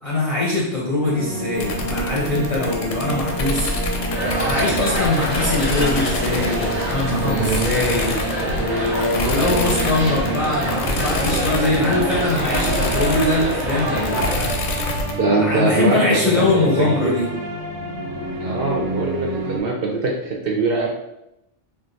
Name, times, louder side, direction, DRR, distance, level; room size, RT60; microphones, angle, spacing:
voice 1, 0.0-3.7 4.4-8.3 8.6-14.5 14.8-17.3, left 2 dB, 40° left, -6 dB, 0.5 m, -22 dB
sound 1, 1.0-19.6, right 3 dB, 90° right, 0.9 m, -29 dB
sound 2, 1.6-15.1, left 2 dB, 85° left, 0.9 m, -27 dB
sound 3, 4.1-14.3, right 1 dB, 15° right, 0.7 m, -26 dB
voice 2, 7.2-7.9 15.2-17.1 18.4-20.9, right 3 dB, 60° right, -1 dB, 0.6 m, -22 dB
2.4 x 2.2 x 3.9 m, 0.87 s
omnidirectional pair, 1.2 m